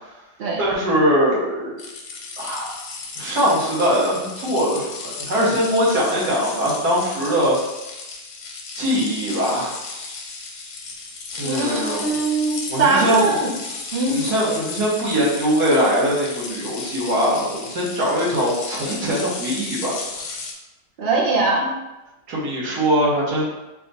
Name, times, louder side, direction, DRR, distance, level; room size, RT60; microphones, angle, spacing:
voice 1, 0.6-1.7 2.4-2.7 3.2-7.6 8.8-9.7 11.3-12.1 12.7-13.3 14.1-20.0 22.3-23.5, equal, 80° right, -6 dB, 1.6 m, -21 dB
sound 1, 1.8-20.5, left 4 dB, 70° left, 1.0 m, -34 dB
voice 2, 11.4-13.5 13.9-14.2 21.0-21.7, right 3 dB, 55° right, -4 dB, 0.7 m, -21 dB
3.5 x 2.4 x 3.9 m, 1.0 s
omnidirectional pair, 1.7 m